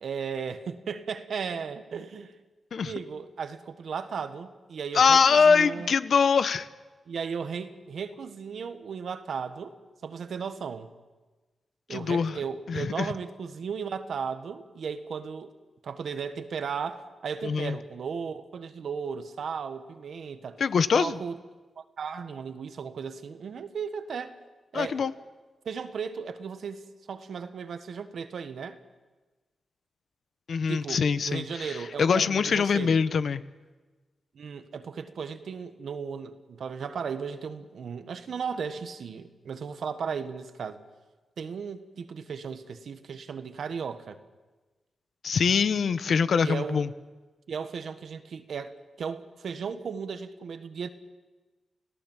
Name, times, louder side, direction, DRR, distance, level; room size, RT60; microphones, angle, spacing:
voice 1, 0.0-2.3 2.8-5.9 7.1-9.8 10.0-10.9 11.9-15.5 15.8-20.6 20.9-21.4 21.8-24.4 24.7-25.1 25.6-28.8 30.7-33.0 34.3-40.8 41.4-44.2 46.4-46.9 47.5-50.9, right 6 dB, 75° right, 9 dB, 1.5 m, -35 dB
voice 2, 4.9-6.7 11.9-12.3 12.7-13.1 17.4-17.8 20.6-21.2 24.7-25.1 30.5-31.7 32.0-33.4 45.2-46.9, left 6 dB, 70° left, 14 dB, 0.9 m, -23 dB
30.0 x 17.0 x 7.4 m, 1.2 s
cardioid pair, 85°, 0 cm